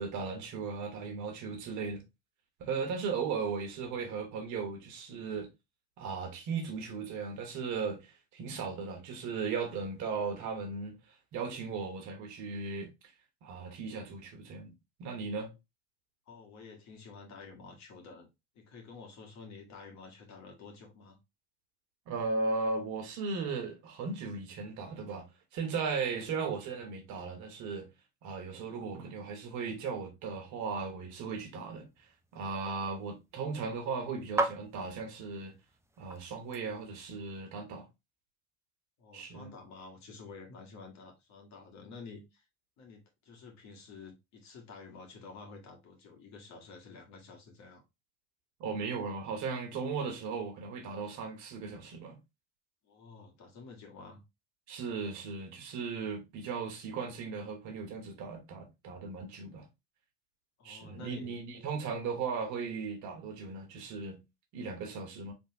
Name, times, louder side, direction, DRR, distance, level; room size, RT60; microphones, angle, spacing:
voice 1, 0.0-2.0 2.6-5.5 6.0-11.0 11.3-12.9 13.4-14.7 15.0-15.5 22.1-27.9 28.2-31.8 32.3-35.6 36.0-37.9 39.1-39.5 48.6-52.2 54.7-59.7 60.6-64.2 64.5-65.3, right 5 dB, 65° right, 1.4 m, -37 dB
voice 2, 16.3-18.3 18.5-21.2 39.0-42.5 42.8-47.8 52.8-54.2 60.6-61.4, left 4 dB, 60° left, 2.0 m, -50 dB
sound 1, 31.3-37.2, right 2 dB, 10° right, 0.7 m, -40 dB
3.8 x 3.5 x 2.9 m
hypercardioid pair, 65°, 32 cm